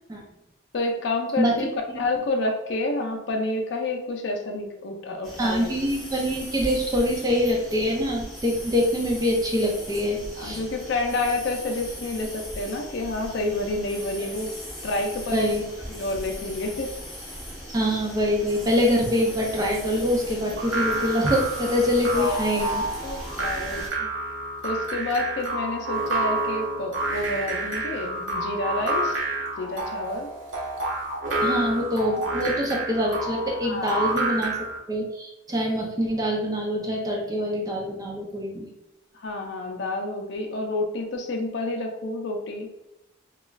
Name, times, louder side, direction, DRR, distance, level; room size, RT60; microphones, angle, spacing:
voice 1, 0.7-1.7 2.0-5.9 10.4-14.5 14.8-15.4 15.9-17.0 22.1-22.6 23.0-24.1 24.6-29.2 29.6-30.3 33.6-34.0 39.1-42.7, left 2 dB, 60° left, 3 dB, 0.4 m, -29 dB
sound 1, 5.2-23.9, equal, ahead, 1.0 m, -39 dB
voice 2, 5.4-10.6 15.3-15.6 17.7-22.8 31.4-34.5 34.9-38.7, equal, 20° right, -2 dB, 0.5 m, -24 dB
sound 2, 20.6-34.8, right 2 dB, 80° right, 0.7 m, -29 dB
2.3 x 2.3 x 3.0 m, 0.90 s
head